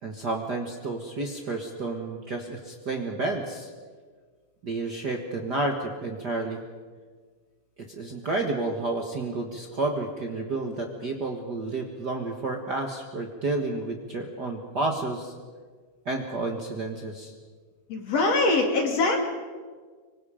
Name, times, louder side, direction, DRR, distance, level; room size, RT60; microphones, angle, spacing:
voice 1, 0.0-3.7 4.6-6.6 7.8-15.3 16.0-17.3, right 2 dB, 40° right, 2 dB, 1.7 m, -30 dB
voice 2, 17.9-19.2, left 3 dB, 55° left, 2 dB, 3.5 m, -23 dB
25.5 x 24.0 x 5.1 m, 1.5 s
omnidirectional pair, 3.6 m